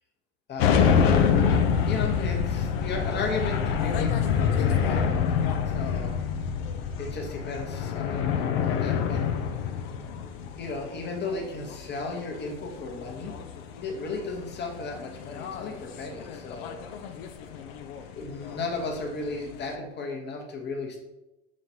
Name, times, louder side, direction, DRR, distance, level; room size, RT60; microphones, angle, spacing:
voice 1, 0.5-0.9 1.9-5.3 5.7-6.1 7.0-8.3 8.6-9.2 10.6-13.3 13.8-16.8 18.1-21.0, left 3 dB, 30° left, 1 dB, 1.1 m, -35 dB
sound 1, 0.6-19.7, left 7 dB, 55° left, 0.6 m, -27 dB
5.8 x 3.1 x 2.8 m, 0.97 s
hypercardioid pair, 80°, 35 cm